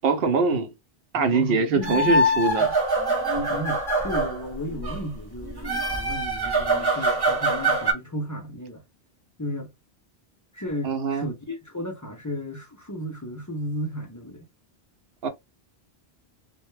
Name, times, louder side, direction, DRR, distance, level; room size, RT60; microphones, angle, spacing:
voice 1, 0.0-0.7 1.1-2.7 10.8-11.3 15.2-15.3, right 4 dB, 70° right, 0.8 m, -23 dB
voice 2, 1.2-2.7 3.4-8.8 9.4-9.7 10.5-14.4, left 1 dB, 30° left, 0.4 m, -34 dB
sound 1, 1.8-5.0 5.4-7.9, right 1 dB, 25° right, 0.6 m, -24 dB
2.1 x 2.1 x 3.1 m
omnidirectional pair, 1.1 m